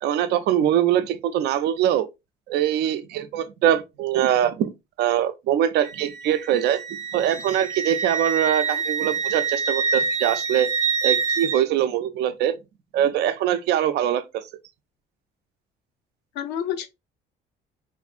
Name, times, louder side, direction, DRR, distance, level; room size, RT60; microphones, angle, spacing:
voice 1, 0.0-2.1 2.5-4.7 5.0-6.8 7.1-10.7 11.0-12.5 12.9-14.4, right 10 dB, 75° right, 0.4 m, -22 dB
Wind instrument woodwind instrument, 5.8-11.6, right 5 dB, 20° right, 0.6 m, -26 dB
voice 2, 8.5-8.8 16.3-16.9, left 9 dB, 85° left, 0.6 m, -30 dB
3.5 x 2.6 x 2.4 m
cardioid pair, 110°, 17 cm